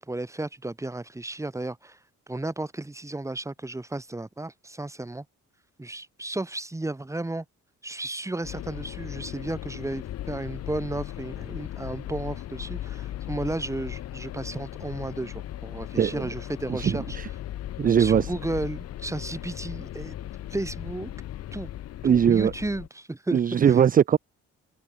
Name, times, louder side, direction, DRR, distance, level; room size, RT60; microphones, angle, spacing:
voice 1, 0.0-2.0 2.3-5.2 5.8-7.4 7.8-17.0 18.0-21.1 21.5-21.7 22.0-23.4, right 2 dB, 10° right, 1.4 m, -33 dB
sound 1, 8.4-22.9, left 12 dB, 55° left, 0.6 m, -37 dB
voice 2, 16.0-16.3 16.7-17.3 17.8-18.3 22.0-22.5 23.3-24.2, right 8 dB, 30° right, 0.4 m, -21 dB
open air
cardioid pair, 90°, 30 cm